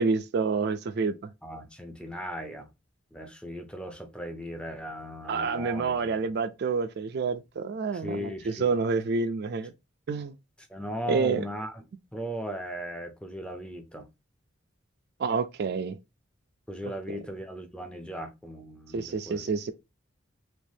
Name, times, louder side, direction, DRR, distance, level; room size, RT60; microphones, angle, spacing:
voice 1, 0.0-1.3 5.3-9.7 10.1-10.4 11.1-11.4 15.2-16.0 17.1-17.2 18.9-19.7, right 4 dB, 55° right, 0.3 m, -28 dB
voice 2, 1.4-2.7 3.1-6.2 8.0-8.7 10.7-11.8 12.1-14.1 16.7-19.5, equal, 5° left, 0.5 m, -37 dB
3.3 x 3.0 x 2.6 m
head